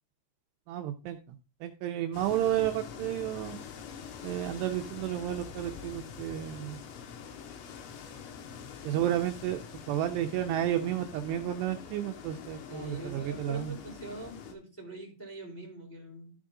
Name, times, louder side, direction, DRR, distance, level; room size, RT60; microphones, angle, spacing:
voice 1, 0.7-1.2 1.6-3.6 4.2-6.8 8.8-13.7, right 12 dB, 80° right, 5 dB, 2.7 m, -32 dB
sound 1, 2.1-14.5, left 7 dB, 80° left, 3.7 m, -45 dB
voice 2, 12.7-16.3, right 2 dB, 5° left, -2 dB, 3.2 m, -43 dB
13.5 x 5.0 x 3.7 m, 0.34 s
omnidirectional pair, 5.3 m